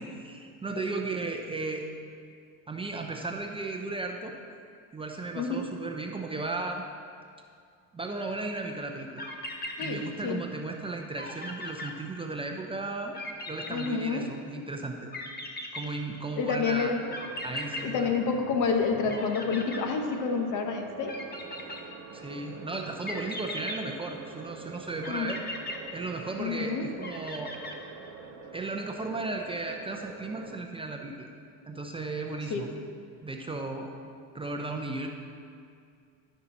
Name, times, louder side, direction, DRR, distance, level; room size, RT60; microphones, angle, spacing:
voice 1, 0.0-1.9 2.7-4.3 4.9-6.8 7.9-9.2 9.8-13.2 13.5-15.1 15.7-17.0 17.4-18.1 22.1-25.4 25.9-27.5 28.5-31.3 31.6-32.7 33.2-33.9 34.3-35.1, right 3 dB, 15° right, 2 dB, 0.6 m, -35 dB
voice 2, 5.4-5.7 9.8-10.4 13.7-14.3 16.4-17.0 17.8-21.2 25.1-25.3 26.4-26.9 32.5-32.7, left 5 dB, 55° left, 5 dB, 1.0 m, -29 dB
sound 1, 8.9-9.0 9.2-10.5 10.8-10.9 11.2-12.6 13.1-14.6 15.1-16.5 17.1-18.8 19.1-20.5 21.1-22.3 23.1-24.5 25.0-26.6 27.0-28.2, left 1 dB, 25° left, 1.0 m, -39 dB
sound 2, 16.4-30.6, right 5 dB, 40° right, 1.0 m, -46 dB
12.5 x 5.6 x 3.0 m, 2.3 s
supercardioid pair, 100°, 37 cm